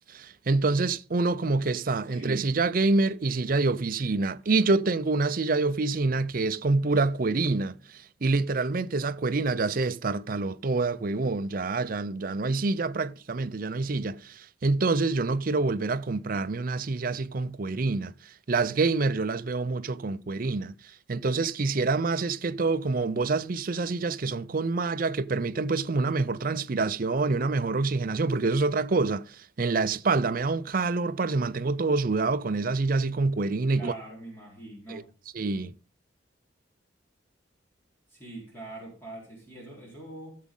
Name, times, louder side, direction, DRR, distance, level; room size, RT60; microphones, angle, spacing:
voice 1, 0.1-18.1 18.5-20.7 21.1-33.9 34.9-35.0 35.3-35.7, right 3 dB, 45° right, 0.5 m, -26 dB
voice 2, 33.7-35.1 38.1-40.4, right 2 dB, 10° left, 4.0 m, -43 dB
15.0 x 7.2 x 3.8 m
head